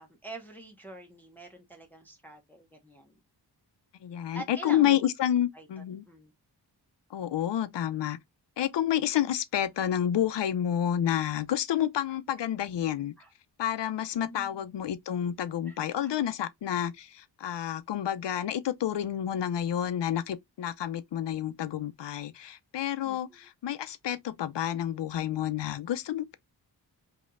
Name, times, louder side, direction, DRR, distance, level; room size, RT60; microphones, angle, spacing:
voice 1, 0.0-3.1 4.3-5.1 5.5-6.3 12.1-12.2 13.2-13.3 14.2-14.6 15.7-16.2 23.0-23.5, right 2 dB, 5° left, 0.9 m, -46 dB
voice 2, 4.0-6.0 7.1-8.2 8.6-13.1 13.6-26.3, left 10 dB, 90° left, 0.6 m, -29 dB
5.1 x 2.9 x 2.5 m
wide cardioid pair, 145°, 41 cm